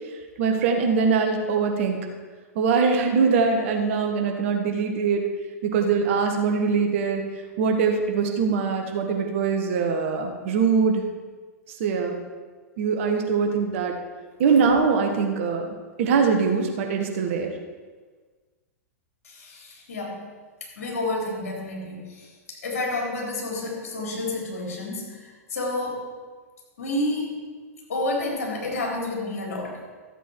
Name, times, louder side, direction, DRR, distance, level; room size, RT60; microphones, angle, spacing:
voice 1, 0.4-2.0 2.5-5.2 5.6-7.2 7.6-11.0 11.8-12.1 12.8-13.9 14.4-15.6 16.0-17.5, right 5 dB, 55° right, 3 dB, 1.7 m, -22 dB
voice 2, 19.2-20.2 20.6-26.1 26.8-27.4 27.9-29.8, left 2 dB, 70° left, -2 dB, 3.8 m, -30 dB
14.0 x 8.0 x 4.7 m, 1.4 s
figure-of-eight pair, 100°, 8 cm